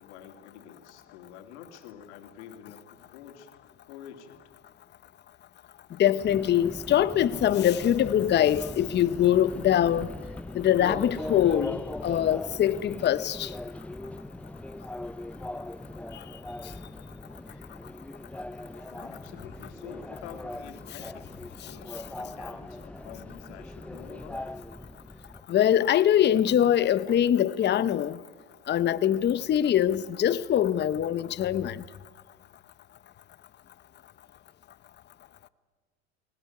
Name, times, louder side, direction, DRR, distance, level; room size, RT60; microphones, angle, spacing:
voice 1, 0.0-3.5 3.9-4.4 19.1-24.6, left 9 dB, 75° left, 3.1 m, -48 dB
voice 2, 6.0-10.1 10.5-13.5 25.5-28.2 28.7-31.8, left 10 dB, 30° left, 0.8 m, -23 dB
Subway metro underground, 6.2-25.4, left 1 dB, 5° left, 0.6 m, -40 dB
20.0 x 18.5 x 9.4 m
hypercardioid pair, 95°, 35 cm